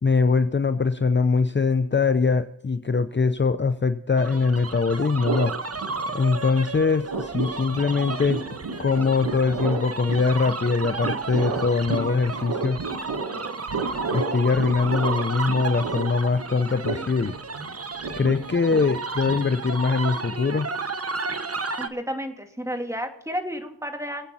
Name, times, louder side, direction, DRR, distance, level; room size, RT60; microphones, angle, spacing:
voice 1, 0.0-5.5 6.1-8.4 8.8-12.8 14.1-17.3 18.1-20.7, left 4 dB, 30° left, 10 dB, 0.7 m, -22 dB
sound 1, 4.1-21.9, right 4 dB, 40° right, 1.2 m, -33 dB
sound 2, 5.2-6.5 6.7-19.9, right 4 dB, 70° right, 1.6 m, -32 dB
voice 2, 21.7-24.3, equal, 10° right, 4 dB, 2.6 m, -31 dB
24.5 x 8.6 x 4.2 m, 0.77 s
wide cardioid pair, 65°, 38 cm